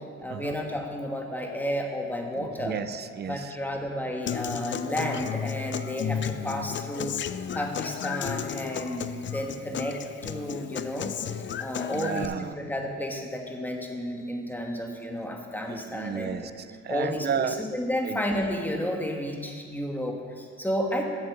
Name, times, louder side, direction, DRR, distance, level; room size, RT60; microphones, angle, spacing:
voice 1, 0.2-2.8 3.3-7.2 7.5-16.4 16.9-21.1, equal, 5° left, 2 dB, 1.4 m, -32 dB
voice 2, 2.6-3.5 11.9-12.6 15.7-17.6 18.0-18.2, right 8 dB, 35° right, 13 dB, 0.5 m, -32 dB
Human voice / Acoustic guitar, 4.3-12.2, left 8 dB, 40° left, 0.4 m, -33 dB
8.0 x 7.6 x 6.9 m, 2.1 s
cardioid pair, 90°, 30 cm